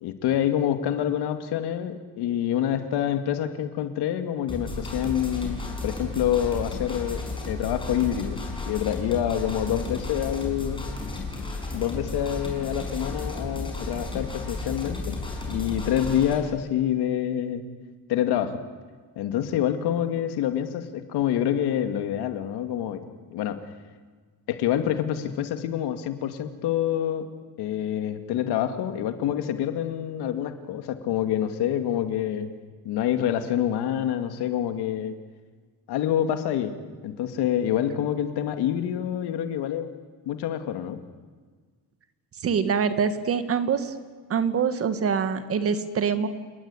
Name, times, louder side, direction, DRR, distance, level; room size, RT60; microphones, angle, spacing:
voice 1, 0.0-10.9 11.7-15.2 15.5-17.6 18.1-18.6 19.2-23.6 24.5-32.5 32.8-35.2 35.9-36.7 37.0-39.9 40.3-41.0, left 10 dB, 80° left, 8 dB, 2.4 m, -27 dB
sound 1, 4.5-16.4, left 2 dB, 15° left, 5.7 m, -33 dB
voice 2, 42.4-43.9 44.3-46.3, right 6 dB, 35° right, 11 dB, 1.6 m, -24 dB
29.5 x 19.0 x 9.8 m, 1.5 s
cardioid pair, 175°, 39 cm